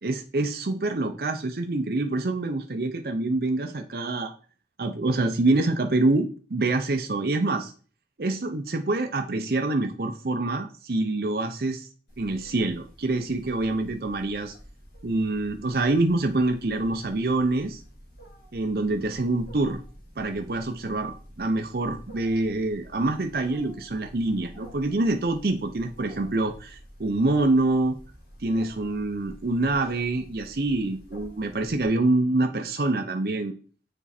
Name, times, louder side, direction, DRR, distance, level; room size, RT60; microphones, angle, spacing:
voice 1, 0.0-4.3 4.8-7.7 8.2-11.9 12.2-14.5 15.0-17.8 18.5-19.8 20.2-28.0 28.4-33.5, right 2 dB, 60° right, 4 dB, 0.6 m, -26 dB
Wild animals, 12.1-31.9, equal, 65° left, 4.0 m, -48 dB
7.1 x 4.4 x 4.3 m, 0.39 s
head